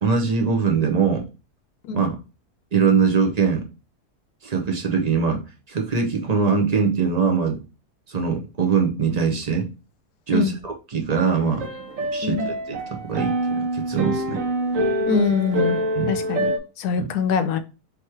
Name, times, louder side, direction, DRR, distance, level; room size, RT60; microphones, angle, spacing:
voice 1, 0.0-1.2 1.9-2.1 2.7-3.6 4.4-5.4 5.7-7.6 8.1-9.7 10.3-11.7 12.1-12.4 12.7-12.8 13.1-13.3 13.7-14.4 15.9-16.1 17.0-17.1, right 5 dB, 40° right, 2 dB, 0.6 m, -22 dB
sound 1, 11.1-16.6, right 1 dB, 60° right, 1.1 m, -26 dB
voice 2, 15.1-15.8 16.1-17.6, left 6 dB, 75° left, 9 dB, 1.1 m, -23 dB
3.5 x 3.1 x 4.4 m, 0.31 s
omnidirectional pair, 1.7 m